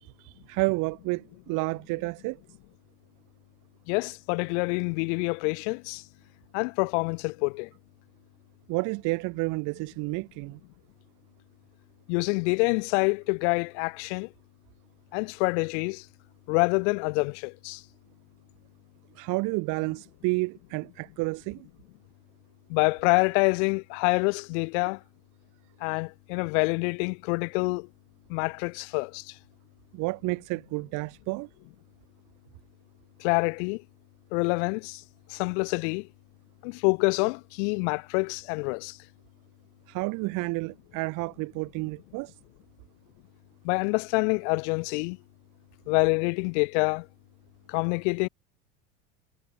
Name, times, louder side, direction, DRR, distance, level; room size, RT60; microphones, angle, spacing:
voice 1, 0.0-2.4 8.7-10.6 19.1-21.7 29.9-31.5 39.9-42.3, right 26 dB, 55° right, 0.8 m, -30 dB
voice 2, 3.9-6.0 6.5-7.7 12.1-14.3 15.1-16.0 16.5-17.8 22.7-25.0 25.8-27.9 28.3-29.3 33.2-33.8 34.3-35.0 35.3-36.1 36.6-39.0 43.6-45.2 45.9-47.1 47.7-48.3, left 33 dB, 65° left, 0.8 m, -26 dB
hypercardioid pair, 85°, 39 cm